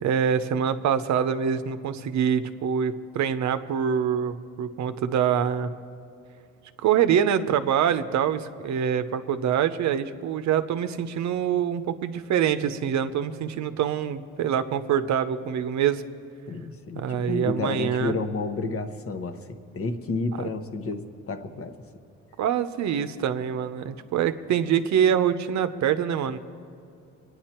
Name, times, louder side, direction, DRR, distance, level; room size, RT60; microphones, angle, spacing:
voice 1, 0.0-5.7 6.8-16.0 16.9-18.2 22.4-26.4, right 8 dB, 65° right, 11 dB, 0.7 m, -25 dB
voice 2, 16.5-21.8, left 3 dB, 50° left, 8 dB, 1.1 m, -31 dB
22.5 x 9.6 x 4.4 m, 2.5 s
cardioid pair, 90°, 30 cm